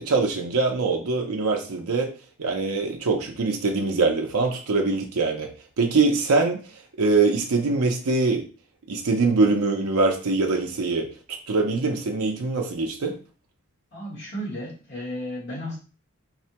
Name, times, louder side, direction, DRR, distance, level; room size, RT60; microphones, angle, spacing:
voice 1, 0.0-2.1 2.4-5.5 5.8-6.6 7.0-8.4 8.9-11.1 11.5-13.1, right 3 dB, 85° right, 2 dB, 0.6 m, -23 dB
voice 2, 13.9-15.8, equal, 55° left, -5 dB, 1.2 m, -33 dB
4.1 x 2.1 x 2.8 m, 0.36 s
head